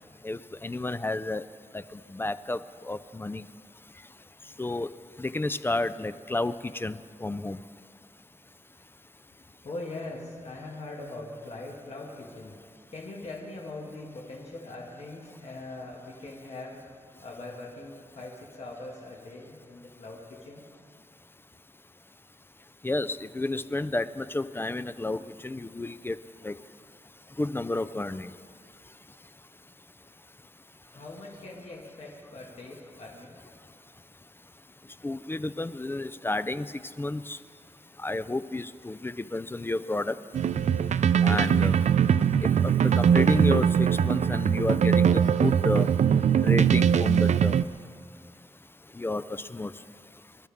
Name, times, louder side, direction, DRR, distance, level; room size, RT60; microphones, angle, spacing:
voice 1, 0.2-1.4 1.7-1.8 2.1-2.6 2.8-3.4 4.6-4.9 5.2-7.6 22.8-26.2 26.4-26.6 27.4-28.3 35.0-36.7 37.0-37.4 38.0-40.2 41.2-41.8 42.6-45.9 46.4-47.6 49.0-49.7, left 2 dB, 20° left, 14 dB, 0.4 m, -31 dB
voice 2, 9.6-12.6 12.9-16.8 17.2-20.6 30.9-33.4, left 2 dB, 65° left, -3 dB, 2.1 m, -41 dB
sound 1, 40.3-47.6, right 8 dB, 85° right, 0.4 m, -22 dB
26.0 x 12.5 x 3.6 m, 2.2 s
wide cardioid pair, 110°, 12 cm